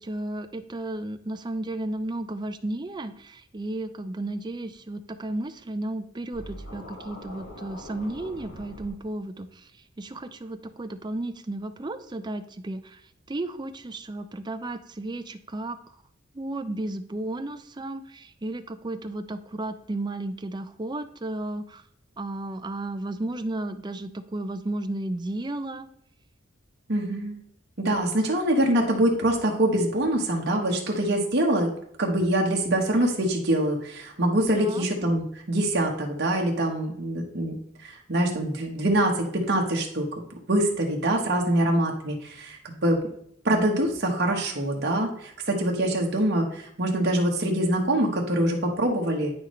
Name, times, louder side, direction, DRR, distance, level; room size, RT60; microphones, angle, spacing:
voice 1, 0.0-16.0 16.3-21.8 22.2-25.9 34.6-34.9, right 2 dB, 25° right, 10 dB, 0.5 m, -33 dB
Scratching (performance technique), 6.3-8.9, equal, 85° left, 3.5 m, -42 dB
voice 2, 26.9-27.4 27.8-31.7 32.0-37.5 37.8-40.2 40.5-43.0 43.4-49.3, right 1 dB, 55° right, 0 dB, 1.3 m, -24 dB
9.1 x 6.1 x 3.2 m, 0.70 s
head